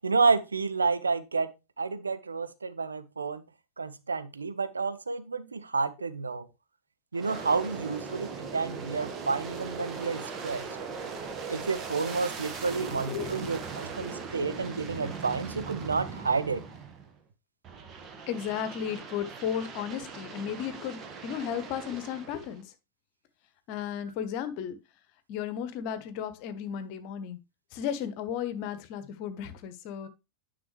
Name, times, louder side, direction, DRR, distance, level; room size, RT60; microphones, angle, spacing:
voice 1, 0.0-1.5 1.8-3.4 3.8-6.5 7.1-10.6 11.5-16.6, right 4 dB, 75° right, 0.7 m, -30 dB
Aircraft, 7.1-17.2 17.6-22.6, right 5 dB, 30° right, 1.4 m, -40 dB
voice 2, 18.3-22.6 23.7-24.8 25.3-27.4 27.7-30.1, left 8 dB, 45° left, 1.1 m, -34 dB
9.8 x 5.8 x 3.2 m
figure-of-eight pair, 90°, 0 cm